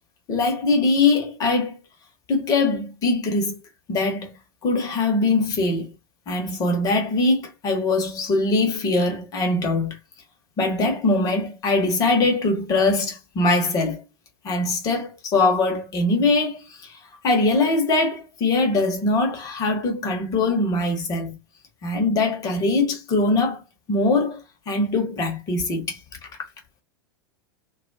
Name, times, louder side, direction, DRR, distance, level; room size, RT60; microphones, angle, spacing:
voice 1, 0.3-1.8 2.3-3.6 3.9-4.4 4.6-5.9 6.3-10.0 10.6-14.0 14.4-17.0 17.2-21.4 21.8-23.6 23.9-24.4 24.7-26.0, left 3 dB, 30° left, 1.0 m, -22 dB
2.3 x 2.3 x 2.5 m
figure-of-eight pair, 90°, 13 cm